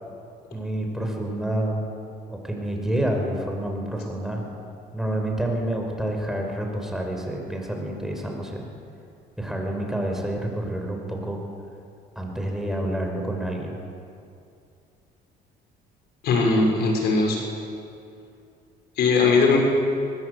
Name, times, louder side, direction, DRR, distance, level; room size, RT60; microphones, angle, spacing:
voice 1, 0.5-1.8 2.3-4.5 4.9-8.7 9.4-11.4 12.2-13.8, right 1 dB, ahead, 1 dB, 5.2 m, -28 dB
voice 2, 16.2-17.4 19.0-19.6, left 4 dB, 75° left, 1 dB, 6.3 m, -19 dB
22.5 x 21.5 x 8.3 m, 2.5 s
cardioid pair, 110°, 17 cm